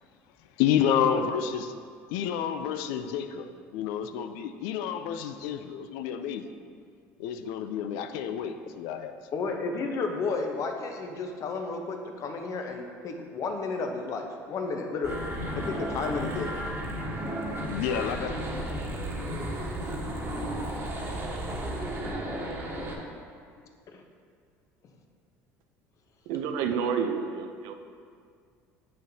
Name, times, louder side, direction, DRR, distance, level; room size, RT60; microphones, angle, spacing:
voice 1, 0.6-1.7 2.1-6.4 7.2-9.1 9.5-9.6 17.7-18.3, left 8 dB, 75° left, 9 dB, 0.4 m, -29 dB
voice 2, 9.3-15.2 15.6-16.5 23.9-24.0, left 4 dB, 50° left, 3 dB, 0.8 m, -32 dB
sound 1, 15.0-22.9, equal, 35° right, 1.3 m, -33 dB
voice 3, 26.3-27.7, right 6 dB, 70° right, 7 dB, 0.5 m, -29 dB
7.5 x 6.3 x 2.7 m, 2.1 s
supercardioid pair, 85°, 7 cm